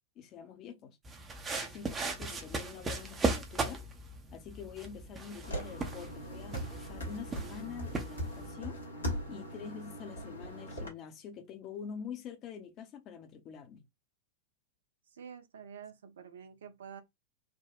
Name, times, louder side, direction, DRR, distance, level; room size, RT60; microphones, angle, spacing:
voice 1, 0.2-1.0 1.6-3.8 4.3-8.8 9.3-13.8, left 7 dB, 35° left, 0.7 m, -46 dB
sound 1, 1.0-8.5, right 3 dB, 20° right, 0.7 m, -37 dB
sound 2, 5.4-10.9, equal, 75° left, 1.2 m, -40 dB
voice 2, 15.1-17.0, right 7 dB, 65° right, 0.6 m, -48 dB
3.6 x 2.2 x 2.4 m
figure-of-eight pair, 90°, 0 cm